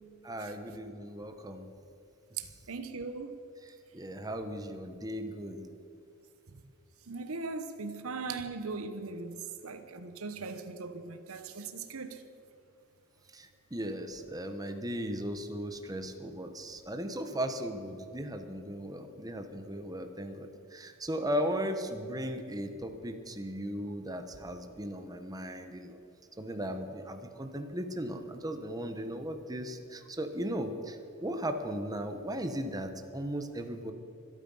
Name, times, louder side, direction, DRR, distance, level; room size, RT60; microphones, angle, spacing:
voice 1, 0.2-1.7 2.4-2.5 3.6-5.7 13.3-26.0 26.4-33.9, equal, 15° right, 1.0 m, -37 dB
voice 2, 2.4-3.4 7.1-12.2, right 4 dB, 75° right, 1.0 m, -39 dB
24.5 x 8.9 x 5.5 m
head